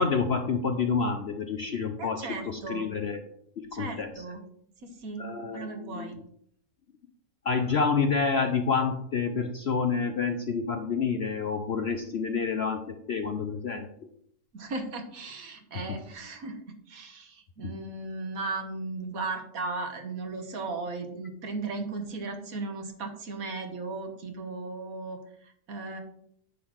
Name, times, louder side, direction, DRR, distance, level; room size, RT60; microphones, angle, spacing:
voice 1, 0.0-3.2 3.6-4.1 5.2-6.1 7.4-13.9 17.6-17.7, left 5 dB, 55° left, 6 dB, 0.8 m, -28 dB
voice 2, 2.0-2.9 3.7-4.4 4.8-6.2 14.5-26.0, right 3 dB, 60° right, 6 dB, 1.7 m, -36 dB
10.0 x 3.9 x 6.3 m, 0.68 s
omnidirectional pair, 1.7 m